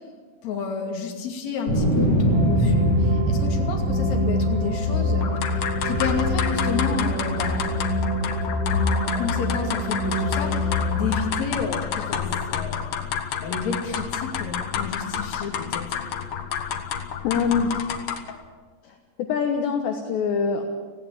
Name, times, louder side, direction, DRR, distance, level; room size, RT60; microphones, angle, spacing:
voice 1, 0.4-5.3 5.8-8.0 8.7-13.0 13.4-15.9, left 5 dB, 40° left, 1 dB, 3.1 m, -31 dB
sound 1, 1.7-6.9 7.4-8.2, right 1 dB, 20° right, 8.3 m, -25 dB
sound 2, 2.3-11.2, left 2 dB, 85° right, 7.0 m, -25 dB
sound 3, 5.2-18.4, left 7 dB, 90° left, 1.8 m, -30 dB
voice 2, 17.2-17.9 18.8-20.6, left 6 dB, 70° left, 4 dB, 3.0 m, -25 dB
19.0 x 16.0 x 9.0 m, 1.5 s
omnidirectional pair, 5.9 m